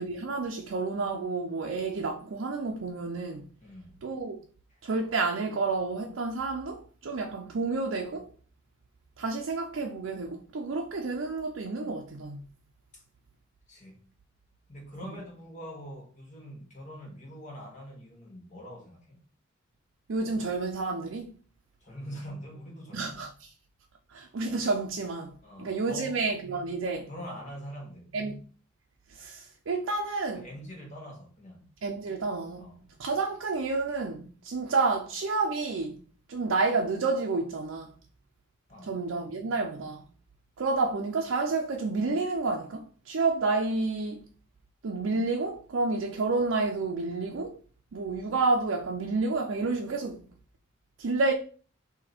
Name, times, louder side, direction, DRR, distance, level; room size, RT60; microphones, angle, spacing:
voice 1, 0.0-3.5 4.0-4.4 4.8-8.3 9.2-12.5 15.0-15.1 20.1-21.3 22.9-23.5 24.1-27.1 28.1-28.4 29.1-30.5 31.8-32.7 33.0-36.0 36.3-37.9 38.8-40.0 40.6-44.3 44.8-47.6 47.9-50.2 51.0-51.3, right 3 dB, 85° right, 0.5 m, -30 dB
voice 2, 3.6-4.0 4.7-4.8 12.9-13.0 13.7-14.0 14.7-19.2 21.8-23.1 25.4-26.2 27.1-28.1 30.3-31.7 32.6-32.9 38.7-39.0, equal, 40° left, 1.3 m, -44 dB
4.1 x 2.8 x 4.3 m
head